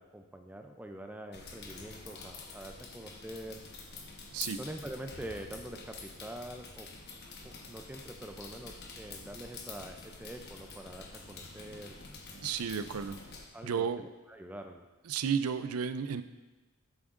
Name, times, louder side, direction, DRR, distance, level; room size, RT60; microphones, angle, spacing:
voice 1, 0.0-3.6 4.6-6.9 7.4-12.0 13.5-14.9, right 1 dB, 10° right, 5 dB, 0.4 m, -45 dB
sound 1, 1.3-13.5, left 3 dB, 50° left, 1.1 m, -47 dB
voice 2, 12.4-13.2 13.6-14.1 15.1-16.2, right 7 dB, 90° right, 12 dB, 0.5 m, -32 dB
11.0 x 8.6 x 2.5 m, 1.2 s
head